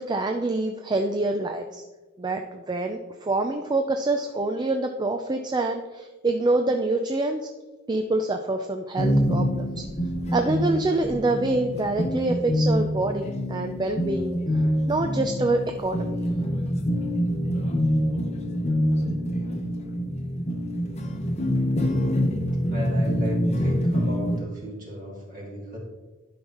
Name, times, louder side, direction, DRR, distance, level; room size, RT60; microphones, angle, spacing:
voice 1, 0.0-1.8 2.2-7.5 7.9-9.8 10.3-16.2, right 2 dB, 20° right, 5 dB, 0.4 m, -26 dB
sound 1, 9.0-24.4, equal, 30° left, 0.8 m, -25 dB
voice 2, 22.7-25.8, equal, 40° right, -3 dB, 2.3 m, -35 dB
12.0 x 5.6 x 3.0 m, 1.2 s
head